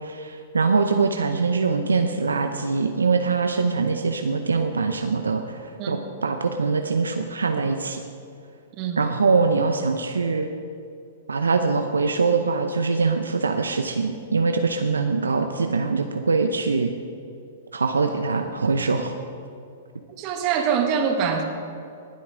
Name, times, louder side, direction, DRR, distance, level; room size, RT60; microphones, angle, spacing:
voice 1, 0.0-5.6 5.9-8.0 8.9-10.5 11.3-16.9 17.7-19.1, right 4 dB, 85° right, 6 dB, 0.7 m, -23 dB
voice 2, 20.2-21.4, right 7 dB, 40° right, 4 dB, 1.7 m, -24 dB
19.0 x 8.5 x 3.8 m, 2.5 s
hypercardioid pair, 115°, 0 cm